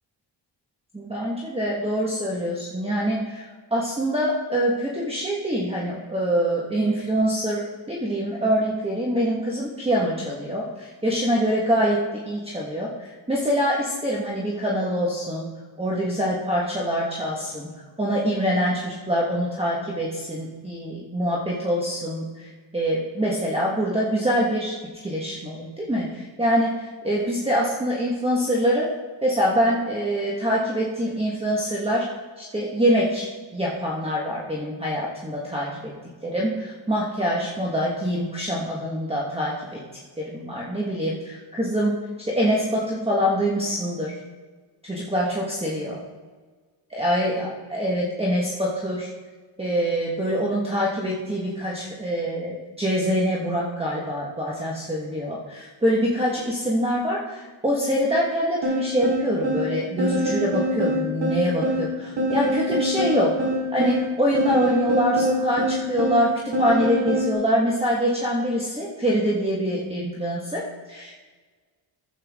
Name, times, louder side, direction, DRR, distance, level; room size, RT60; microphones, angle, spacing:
voice 1, 0.9-15.5 15.8-17.7 18.0-28.9 29.2-32.0 32.4-35.9 36.2-39.8 40.2-44.1 44.8-46.0 47.0-49.1 49.6-70.6 70.9-71.1, equal, 10° right, -4 dB, 1.5 m, -25 dB
sound 1, 58.6-67.3, equal, 65° right, 3.4 m, -25 dB
11.5 x 8.3 x 3.7 m, 1.4 s
cardioid pair, 95°, 47 cm